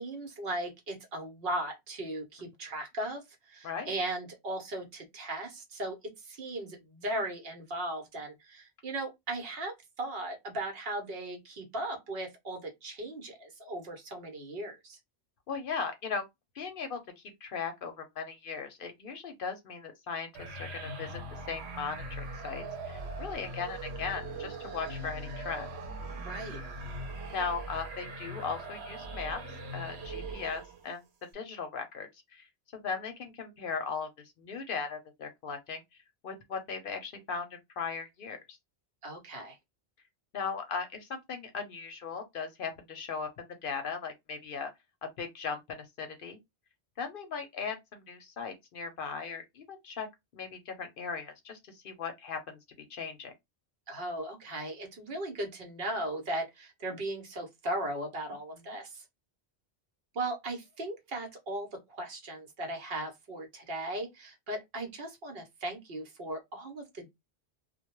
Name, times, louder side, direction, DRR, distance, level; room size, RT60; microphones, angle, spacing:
voice 1, 0.0-6.0 6.2-15.0 26.2-26.6 39.0-39.6 53.9-59.0 60.1-67.1, right 1 dB, 65° right, 1.0 m, -37 dB
voice 2, 15.5-16.2 16.6-21.2 21.5-25.7 27.3-29.4 29.7-31.0 31.3-32.5 32.7-34.1 34.4-35.8 36.2-37.5 37.8-38.6 40.3-44.7 45.2-46.4 47.0-50.1 50.3-52.6 52.9-53.3, left 5 dB, 60° left, 0.7 m, -38 dB
sound 1, 20.3-30.9, right 2 dB, 90° right, 0.9 m, -41 dB
2.2 x 2.1 x 2.9 m
omnidirectional pair, 1.1 m